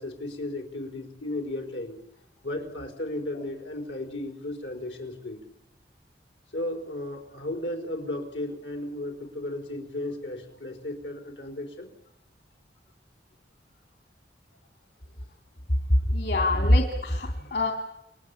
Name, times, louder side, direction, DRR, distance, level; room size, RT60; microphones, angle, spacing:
voice 1, 0.0-2.0 2.4-5.4 6.5-11.9 17.3-17.6, left 1 dB, 90° left, 5 dB, 4.8 m, -35 dB
voice 2, 16.1-17.7, left 1 dB, 65° left, 3 dB, 3.0 m, -23 dB
29.0 x 22.0 x 8.7 m, 0.88 s
head